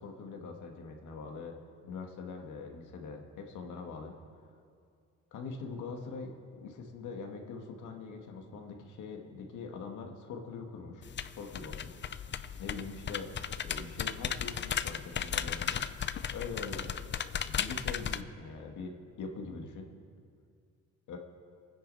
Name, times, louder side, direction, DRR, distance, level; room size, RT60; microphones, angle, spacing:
voice 1, 0.0-1.6 1.8-4.2 5.3-12.0 12.6-15.9 16.3-16.9 17.4-19.9 21.1-21.2, left 4 dB, 80° left, 2 dB, 1.9 m, -43 dB
sound 1, 11.0-18.2, left 8 dB, 40° left, 0.5 m, -36 dB
25.5 x 10.0 x 4.1 m, 2.3 s
cardioid pair, 90°, 30 cm